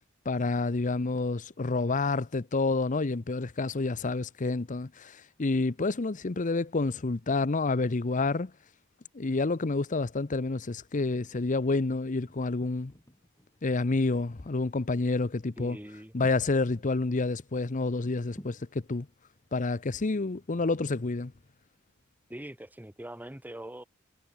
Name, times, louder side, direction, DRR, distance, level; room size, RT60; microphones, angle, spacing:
voice 1, 0.3-8.5 9.1-12.9 13.6-15.8 16.1-19.1 19.5-21.3, left 3 dB, 40° left, 0.7 m, -29 dB
sound 1, 12.3-16.9 17.3-17.4 18.0-18.6, equal, 15° left, 5.3 m, -53 dB
voice 2, 15.6-16.1 22.3-23.8, right 1 dB, 10° right, 1.3 m, -42 dB
head